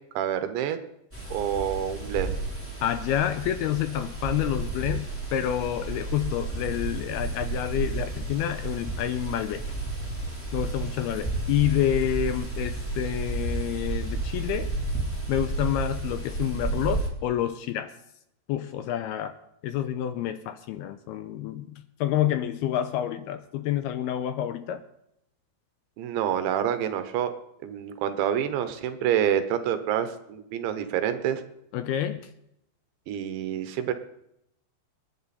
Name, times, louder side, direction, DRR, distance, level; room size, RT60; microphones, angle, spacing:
voice 1, 0.2-0.8 1.3-2.4 26.0-27.3 27.6-31.4 33.1-33.9, right 10 dB, 80° right, 9 dB, 3.3 m, -27 dB
sound 1, 1.1-17.1, right 2 dB, 5° left, 2.9 m, -32 dB
voice 2, 2.8-9.6 10.5-14.7 15.3-17.9 18.5-19.4 19.6-24.8 31.7-32.3, left 11 dB, 85° left, 9 dB, 2.3 m, -28 dB
26.5 x 10.5 x 4.2 m, 0.79 s
omnidirectional pair, 5.3 m